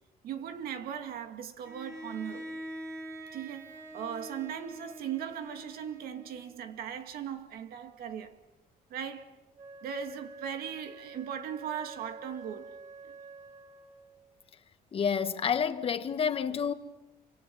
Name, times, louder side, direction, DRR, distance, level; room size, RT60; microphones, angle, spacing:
voice 1, 0.2-2.6 3.3-8.4 8.9-9.4 9.8-12.8 13.0-13.2, right 8 dB, 80° right, 2.2 m, -38 dB
Bowed string instrument, 1.6-6.7, right 1 dB, 20° right, 4.5 m, -44 dB
Wind instrument woodwind instrument, 9.5-14.2, right 4 dB, 50° right, 2.1 m, -49 dB
voice 2, 14.9-16.7, left 7 dB, 40° left, 1.4 m, -29 dB
28.5 x 25.5 x 7.2 m
cardioid pair, 150°, 15 cm